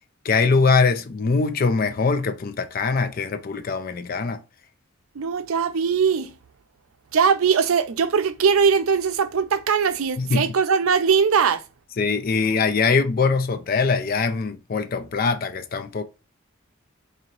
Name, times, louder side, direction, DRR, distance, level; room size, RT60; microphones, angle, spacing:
voice 1, 0.2-4.4 10.2-10.5 12.0-16.0, left 4 dB, 45° left, 0.4 m, -22 dB
voice 2, 5.2-6.3 7.1-11.6, right 6 dB, 90° right, 0.5 m, -20 dB
3.9 x 2.7 x 2.9 m
head